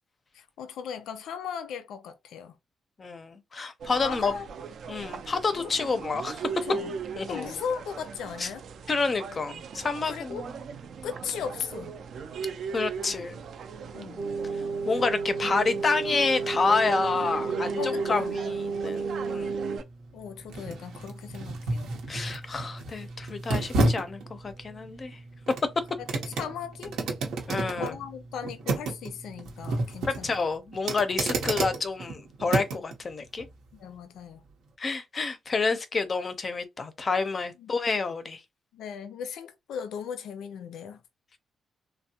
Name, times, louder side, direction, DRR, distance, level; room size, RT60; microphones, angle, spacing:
voice 1, 0.3-2.6 4.0-4.5 6.6-6.9 7.3-8.6 10.0-10.5 11.0-11.9 13.9-14.3 17.8-18.4 20.1-21.9 26.0-27.0 27.7-30.3 31.3-31.4 33.8-34.4 37.6-37.7 38.7-41.0, left 7 dB, 85° left, 0.4 m, -37 dB
voice 2, 3.0-4.3 4.9-6.5 7.2-7.6 8.4-8.5 8.9-10.6 12.7-13.4 14.9-19.6 22.1-25.2 27.5-27.9 30.1-33.5 34.8-38.4, left 4 dB, 30° left, 0.5 m, -29 dB
sound 1, 3.8-19.8, right 5 dB, 60° right, 0.4 m, -39 dB
sound 2, 14.2-19.8, right 4 dB, 30° right, 0.7 m, -32 dB
locked box, 18.3-32.9 33.4-33.5, right 2 dB, 85° right, 0.8 m, -32 dB
3.4 x 2.1 x 2.7 m
cardioid pair, 155°, 0 cm